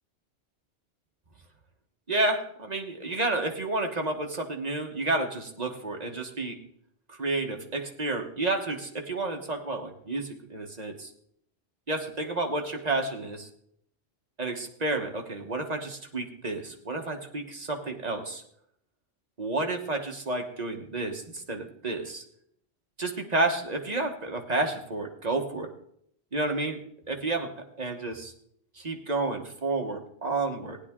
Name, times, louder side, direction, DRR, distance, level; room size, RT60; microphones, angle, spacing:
voice 1, 2.1-6.6 7.1-11.1 11.9-13.5 14.4-18.4 19.4-22.2 23.0-25.7 26.3-28.3 28.7-30.8, right 2 dB, 40° right, 3 dB, 1.3 m, -30 dB
16.0 x 10.0 x 3.6 m, 0.69 s
omnidirectional pair, 1.1 m